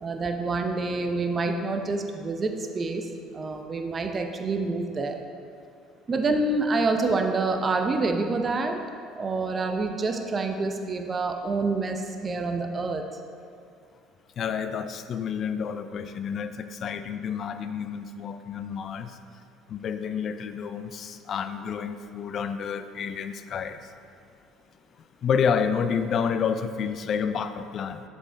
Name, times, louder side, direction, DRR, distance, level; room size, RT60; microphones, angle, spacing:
voice 1, 0.0-3.1 3.3-5.2 6.1-8.8 9.2-13.0, right 3 dB, 35° right, 5 dB, 0.6 m, -27 dB
voice 2, 14.4-19.2 19.7-23.8 25.2-28.0, left 6 dB, 50° left, 10 dB, 0.3 m, -29 dB
7.0 x 4.5 x 3.3 m, 2.4 s
supercardioid pair, 80°, 0 cm